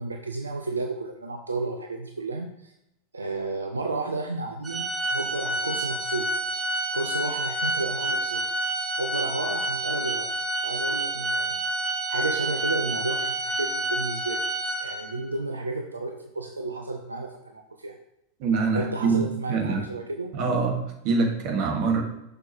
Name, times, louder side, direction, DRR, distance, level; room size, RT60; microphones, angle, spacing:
voice 1, 0.0-2.7 3.1-6.3 6.9-8.4 9.0-10.3 10.6-11.8 12.1-14.5 14.8-18.0 18.7-20.3, right 3 dB, 75° right, 5 dB, 0.5 m, -32 dB
Organ, 4.6-15.3, right 1 dB, 15° right, 1.4 m, -28 dB
voice 2, 18.4-19.2 19.5-19.8 20.3-22.0, right 4 dB, 45° right, 2 dB, 1.5 m, -24 dB
6.5 x 6.2 x 2.9 m, 0.83 s
figure-of-eight pair, 90°, 0 cm